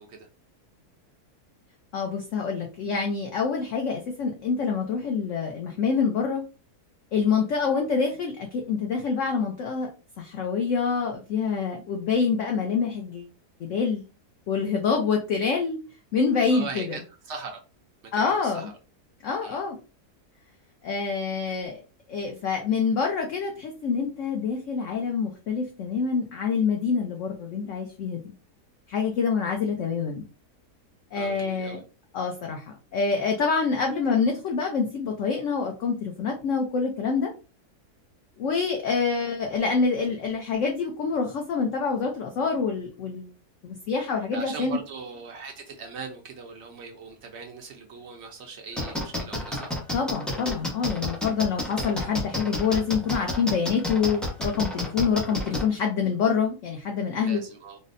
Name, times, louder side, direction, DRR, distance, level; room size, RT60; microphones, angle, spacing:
voice 1, 1.9-6.4 7.1-9.9 10.2-13.3 13.6-14.0 14.5-15.8 16.1-17.0 18.1-18.7 19.2-19.8 20.8-21.8 22.1-28.3 28.9-30.2 31.1-31.8 32.1-32.6 32.9-37.3 38.4-43.3 43.6-44.8 49.9-57.4, left 5 dB, 65° left, 2 dB, 0.8 m, -26 dB
voice 2, 16.5-17.6 18.1-18.7 19.4-19.6 31.1-31.8 44.3-49.7 57.2-57.8, right 4 dB, 65° right, 2 dB, 0.6 m, -40 dB
sound 1, 48.8-55.6, left 1 dB, ahead, 0.3 m, -29 dB
4.0 x 2.0 x 2.5 m, 0.32 s
omnidirectional pair, 1.7 m